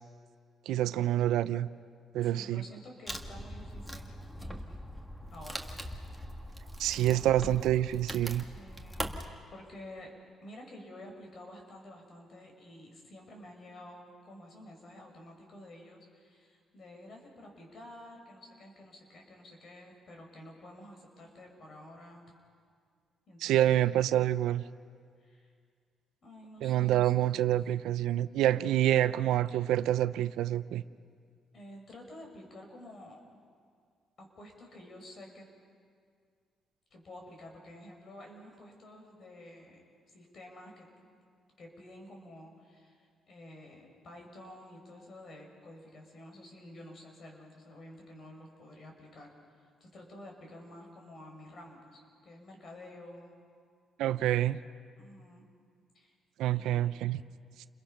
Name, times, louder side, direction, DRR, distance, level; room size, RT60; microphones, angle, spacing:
voice 1, 0.7-1.7 2.1-2.6 6.8-8.4 23.4-24.6 26.6-30.8 54.0-54.6 56.4-57.2, right 13 dB, 90° right, 14 dB, 0.6 m, -27 dB
voice 2, 2.2-4.8 5.3-5.9 6.9-7.5 8.5-10.1 10.4-22.2 23.3-23.8 25.2-25.5 26.2-27.3 29.0-29.2 31.5-33.2 34.2-35.5 36.9-39.8 40.1-40.9 41.6-49.3 49.8-53.4 55.0-55.5 55.9-56.1 56.5-56.9, left 1 dB, 50° left, 1 dB, 6.1 m, -50 dB
Wood, 3.1-9.3, equal, 5° left, 1.8 m, -41 dB
29.5 x 22.0 x 5.8 m, 2.1 s
cardioid pair, 90°, 0 cm